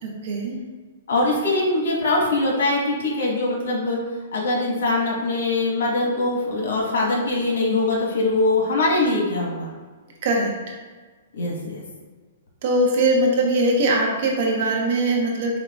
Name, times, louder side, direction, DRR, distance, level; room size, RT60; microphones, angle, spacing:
voice 1, 0.0-0.5 10.2-10.5 12.6-15.6, right 1 dB, 50° right, 0 dB, 0.9 m, -21 dB
voice 2, 1.1-4.0 4.3-9.7 11.3-11.8, left 2 dB, 75° left, -3 dB, 1.2 m, -22 dB
4.6 x 3.6 x 2.3 m, 1.4 s
hypercardioid pair, 160°, 0 cm